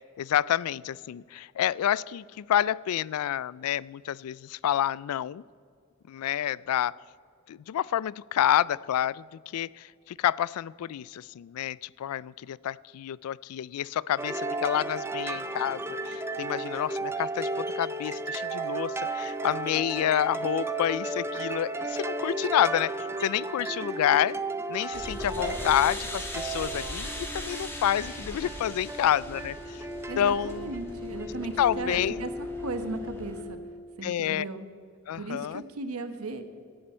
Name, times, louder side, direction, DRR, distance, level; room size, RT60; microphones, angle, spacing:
voice 1, 0.0-5.4 6.1-6.9 7.5-24.4 24.7-29.9 30.2-30.7 31.6-32.2 34.0-34.5 35.1-35.6, left 10 dB, 75° left, 19 dB, 0.3 m, -28 dB
sound 1, 14.2-32.0, right 2 dB, 10° right, 0.6 m, -34 dB
sound 2, 24.9-33.4, left 1 dB, 10° left, 2.0 m, -37 dB
voice 2, 30.1-33.6 34.0-34.7 35.1-36.4, right 3 dB, 75° right, 9 dB, 1.1 m, -36 dB
18.0 x 11.0 x 4.4 m, 2.3 s
head